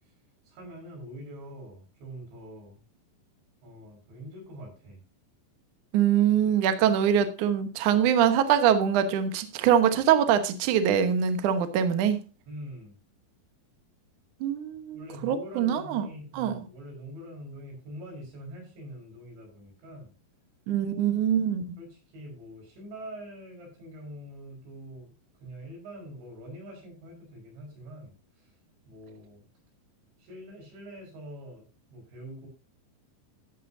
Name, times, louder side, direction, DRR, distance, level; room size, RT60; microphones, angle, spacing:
voice 1, 0.5-2.8 3.6-5.0 12.5-13.0 14.9-20.1 21.8-25.1 25.4-28.5 28.9-29.5 30.2-32.5, equal, 85° right, 1 dB, 7.8 m, -44 dB
voice 2, 5.9-12.2 14.4-16.1 16.3-16.6 20.7-21.6, right 9 dB, 65° right, 9 dB, 2.1 m, -23 dB
13.5 x 10.0 x 2.7 m, 0.34 s
omnidirectional pair, 5.0 m